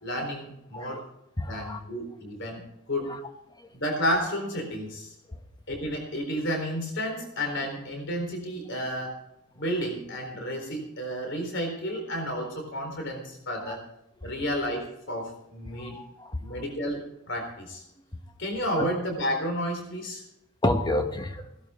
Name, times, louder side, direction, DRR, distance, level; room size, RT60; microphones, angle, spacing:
voice 1, 0.0-1.0 1.5-2.6 2.9-3.2 3.7-5.1 5.7-9.1 9.6-13.8 14.2-16.0 16.4-17.8 18.4-20.2, equal, 55° left, 3 dB, 4.0 m, -31 dB
voice 2, 1.4-1.8 6.3-6.4 13.7-13.8 15.8-16.3 20.6-21.4, left 1 dB, 20° left, 6 dB, 1.1 m, -29 dB
17.5 x 12.0 x 3.7 m, 0.81 s
head